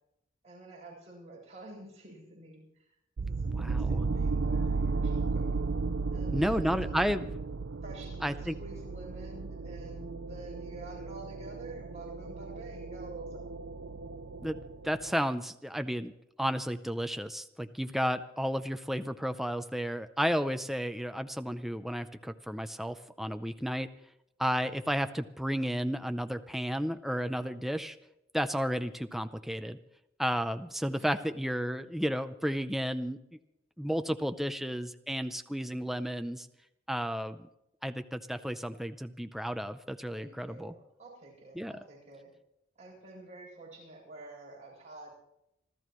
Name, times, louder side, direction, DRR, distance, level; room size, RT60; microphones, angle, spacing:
voice 1, 0.4-5.5 6.1-7.0 7.8-13.6 30.9-31.3 40.1-42.3 42.8-45.1, right 2 dB, 35° right, -2 dB, 7.5 m, -49 dB
sound 1, 3.2-15.1, right 4 dB, 70° right, 0.6 m, -34 dB
voice 2, 3.5-4.0 6.3-7.3 8.2-8.6 14.4-14.6 14.8-16.1 16.4-23.9 24.4-28.0 28.3-29.8 30.2-33.2 33.8-36.5 36.9-37.5 37.8-40.7 41.6-41.7, equal, ahead, 9 dB, 0.5 m, -32 dB
26.5 x 13.5 x 3.1 m, 0.83 s
head